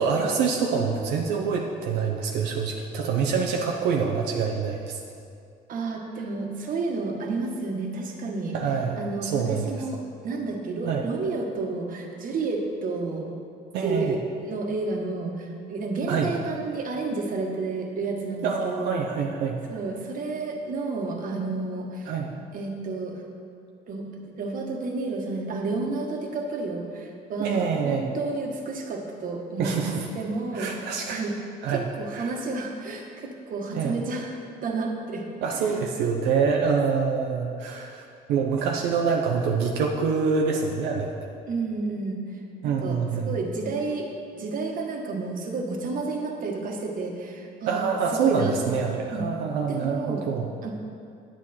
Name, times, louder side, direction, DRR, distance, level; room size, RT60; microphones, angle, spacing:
voice 1, 0.0-5.0 8.5-9.7 10.9-11.1 13.7-14.2 16.1-16.3 18.4-19.6 22.1-22.3 27.4-28.1 29.6-30.1 30.5-31.2 31.6-32.3 33.7-34.0 35.4-38.0 38.3-41.1 42.6-43.3 47.7-50.5, right 5 dB, 90° right, 0 dB, 0.8 m, -26 dB
voice 2, 5.7-8.6 9.0-13.3 13.8-19.0 19.7-22.1 22.5-23.2 23.9-31.3 31.7-34.3 34.6-35.2 35.6-35.7 41.5-44.1 44.3-47.8 48.1-48.8 49.1-49.2 49.7-50.3 50.6-50.7, right 3 dB, 55° right, 1 dB, 1.4 m, -31 dB
9.3 x 8.7 x 4.3 m, 2.4 s
cardioid pair, 110°, 17 cm